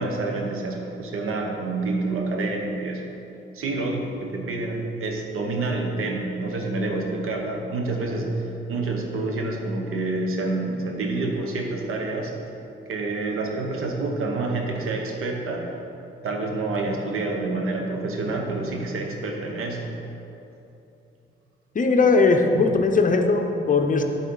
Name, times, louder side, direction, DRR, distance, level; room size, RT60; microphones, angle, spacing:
voice 1, 0.0-3.0 3.5-12.3 12.9-15.7 16.2-19.9 22.5-22.8, right 2 dB, 85° right, 1 dB, 1.2 m, -28 dB
voice 2, 21.7-24.0, left 4 dB, 40° left, 4 dB, 0.7 m, -19 dB
9.0 x 4.2 x 5.6 m, 2.9 s
cardioid pair, 90°, 21 cm